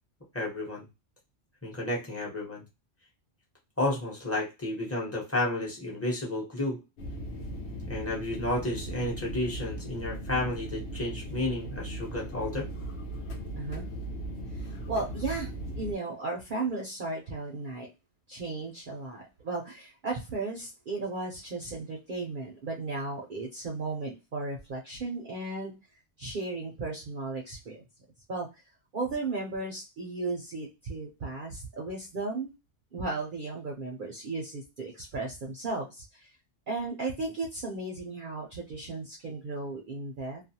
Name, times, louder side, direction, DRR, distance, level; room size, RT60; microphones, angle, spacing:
voice 1, 0.3-0.9 1.6-2.6 3.8-6.8 7.9-12.7, left 1 dB, 15° left, -3 dB, 0.7 m, -31 dB
sound 1, 7.0-15.9, right 1 dB, 70° left, 0.9 m, -38 dB
voice 2, 13.6-13.9 14.5-17.9 18.3-25.7 26.2-27.8 28.3-28.5 28.9-32.5 32.9-36.3 36.7-40.4, right 3 dB, 55° right, -1 dB, 0.6 m, -35 dB
2.4 x 2.2 x 2.7 m, 0.25 s
omnidirectional pair, 1.3 m